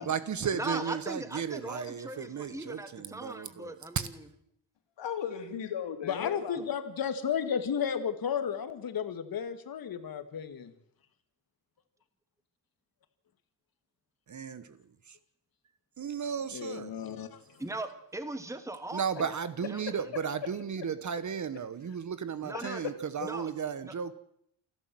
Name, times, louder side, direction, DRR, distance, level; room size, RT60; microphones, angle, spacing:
voice 1, 0.0-4.1 14.3-14.8 15.1-15.2 16.0-16.9 18.9-24.1, right 7 dB, 40° right, 1.1 m, -34 dB
voice 2, 0.5-4.2 17.6-19.3 19.6-20.0 22.4-22.8 23.2-23.5 23.8-23.9, right 2 dB, 5° right, 1.7 m, -39 dB
voice 3, 5.0-6.6 22.5-22.9 23.2-23.3, left 8 dB, 65° left, 3.5 m, -36 dB
voice 4, 6.1-10.7 16.5-17.4, left 7 dB, 45° left, 2.2 m, -33 dB
28.0 x 12.0 x 7.7 m
cardioid pair, 140°, 47 cm